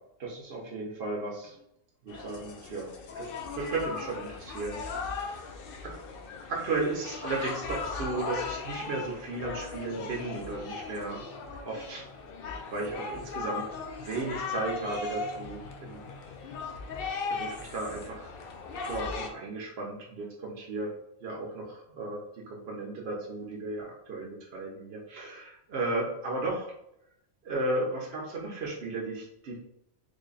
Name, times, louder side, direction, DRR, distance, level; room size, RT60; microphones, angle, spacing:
voice 1, 0.2-1.5 2.0-2.9 3.2-4.8 5.1-5.5 5.8-5.9 6.5-11.2 11.6-12.0 12.7-13.7 14.0-16.0 17.4-18.3 18.8-20.9 21.2-22.2 22.5-26.7 27.4-29.6, right 2 dB, 55° right, -3 dB, 0.9 m, -34 dB
sound 1, 2.1-19.3, left 4 dB, 60° left, 0.6 m, -38 dB
3.4 x 2.2 x 3.9 m, 0.77 s
omnidirectional pair, 1.3 m